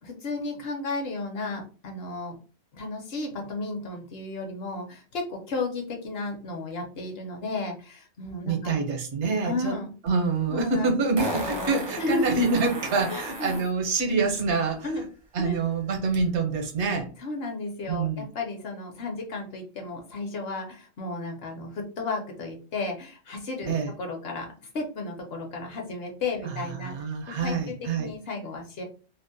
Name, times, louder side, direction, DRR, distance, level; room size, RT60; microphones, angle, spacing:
voice 1, 0.0-2.4 2.7-8.7 9.4-9.9 10.5-12.3 13.1-13.6 14.8-15.0 15.4-15.6 17.2-26.9 27.3-28.8, left 3 dB, 60° left, 2 dB, 0.8 m, -33 dB
voice 2, 8.4-9.8 10.0-14.9 15.3-17.1 17.9-18.3 23.7-23.9 26.4-28.1, right 4 dB, 70° right, 3 dB, 0.9 m, -26 dB
Fart, 10.1-10.2 11.2-13.7 16.1-16.2, right 1 dB, 35° right, 0.5 m, -34 dB
2.6 x 2.0 x 2.5 m, 0.36 s
omnidirectional pair, 1.3 m